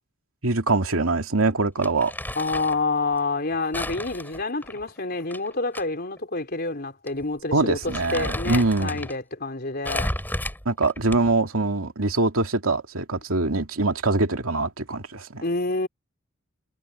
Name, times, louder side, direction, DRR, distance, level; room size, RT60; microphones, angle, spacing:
voice 1, 0.4-2.1 7.5-9.1 10.7-15.4, right 3 dB, 85° right, 2.5 m, -23 dB
Crumpling crinkling, 1.8-2.8 3.7-5.8 6.2-6.3 7.1-7.2 7.6-9.2 9.8-11.5, left 1 dB, 10° left, 6.1 m, -32 dB
voice 2, 2.4-10.1 15.4-15.9, left 3 dB, 50° left, 4.0 m, -28 dB
head